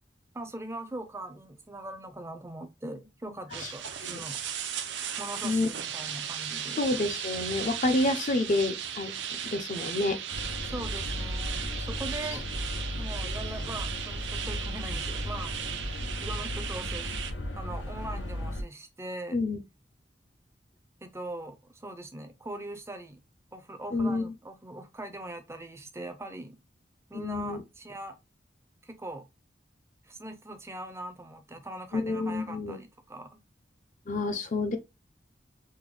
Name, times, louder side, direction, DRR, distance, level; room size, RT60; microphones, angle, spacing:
voice 1, 0.3-4.4 5.2-6.8 10.6-12.5 13.0-15.5 16.2-17.1 17.5-19.4 21.0-23.2 23.5-26.6 27.1-28.2 28.8-29.2 30.1-33.4, right 1 dB, 15° right, 0.5 m, -41 dB
sound 1, 3.5-17.3, right 8 dB, 80° right, 0.6 m, -36 dB
voice 2, 6.8-10.2 19.3-19.6 23.9-24.3 27.1-27.6 31.9-32.8 34.1-34.8, left 2 dB, 45° left, 0.6 m, -29 dB
sound 2, 10.3-18.6, left 1 dB, 90° left, 0.7 m, -35 dB
3.7 x 2.2 x 3.0 m
head